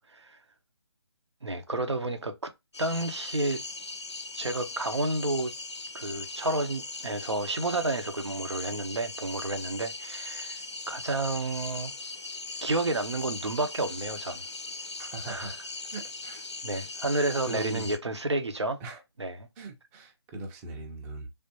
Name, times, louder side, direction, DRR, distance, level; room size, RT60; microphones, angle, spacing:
voice 1, 1.4-2.5 2.8-3.6 4.3-5.5 5.9-11.9 12.6-14.4 15.3-15.5 16.6-18.8 19.2-19.5, right 2 dB, 85° right, 0.7 m, -30 dB
sound 1, 2.7-18.0, left 3 dB, 90° left, 0.5 m, -39 dB
voice 2, 15.0-15.6 15.9-16.9 17.4-17.9 18.8-19.0 19.6-21.3, right 2 dB, 10° right, 0.5 m, -39 dB
3.3 x 2.5 x 2.7 m
figure-of-eight pair, 145°, 14 cm